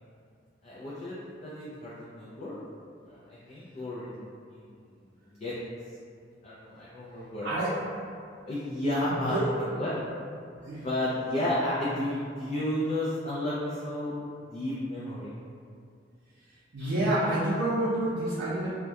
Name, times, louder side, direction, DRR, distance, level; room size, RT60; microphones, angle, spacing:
voice 1, 0.6-2.6 3.1-4.7 5.4-5.5 6.4-7.5 8.4-9.4 9.8-9.9 10.7-14.2 14.5-15.3, left 1 dB, 35° left, -8 dB, 0.3 m, -32 dB
voice 2, 9.0-9.5 9.9-10.0 10.6-10.9 16.7-18.7, right 1 dB, 65° right, -10 dB, 0.5 m, -28 dB
2.2 x 2.1 x 2.7 m, 2.4 s
head